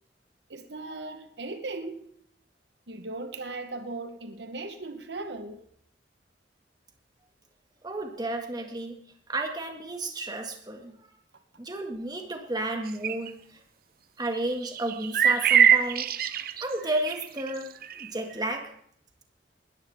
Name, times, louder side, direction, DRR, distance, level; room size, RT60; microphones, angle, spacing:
voice 1, 0.5-2.1 2.9-5.6, right 2 dB, 75° right, 1.1 m, -37 dB
voice 2, 7.8-9.0 9.3-10.9 11.6-13.6 14.2-17.7 18.0-18.7, right 2 dB, 25° right, 1.9 m, -32 dB
sound 1, 13.0-13.3 14.5-17.5 17.8-18.1 18.5-18.6, right 8 dB, 55° right, 0.8 m, -23 dB
19.5 x 13.5 x 3.6 m
head